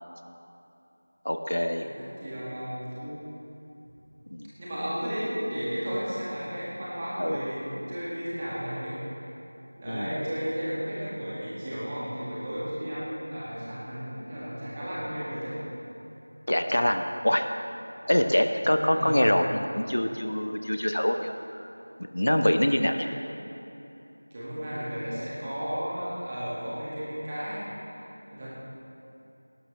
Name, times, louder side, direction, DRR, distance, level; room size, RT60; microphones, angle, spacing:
voice 1, 1.2-1.9 4.3-4.5 7.2-7.4 9.9-10.2 16.5-17.5 18.1-21.3 22.1-23.1, equal, 60° left, 6 dB, 0.8 m, -25 dB
voice 2, 1.8-3.2 4.6-9.0 9.8-15.6 18.9-19.2 23.0-23.1 24.3-27.6 27.9-28.5, equal, 15° right, -9 dB, 1.9 m, -34 dB
18.5 x 11.5 x 3.3 m, 2.9 s
figure-of-eight pair, 180°, 0 cm